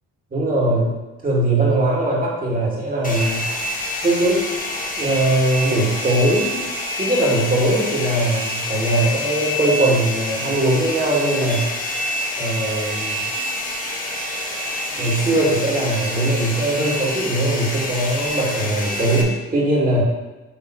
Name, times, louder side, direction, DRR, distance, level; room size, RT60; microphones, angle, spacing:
voice 1, 0.3-1.0 1.2-3.5 4.0-4.4 5.0-6.6 7.0-11.6 12.4-13.2 15.0-20.0, right 1 dB, 30° right, -5 dB, 2.4 m, -20 dB
Domestic sounds home sounds, 3.0-19.2, left 1 dB, 25° left, 1.2 m, -27 dB
7.3 x 3.7 x 4.7 m, 1.1 s
cardioid pair, 90°, 30 cm